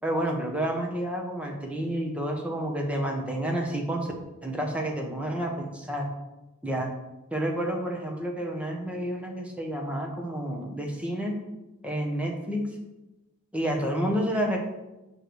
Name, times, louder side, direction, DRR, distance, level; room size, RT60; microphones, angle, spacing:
voice 1, 0.0-4.1 4.4-6.1 6.6-6.9 7.3-11.4 11.8-12.6 13.5-14.6, right 1 dB, 5° right, 1 dB, 1.1 m, -29 dB
7.6 x 3.3 x 6.3 m, 1.0 s
head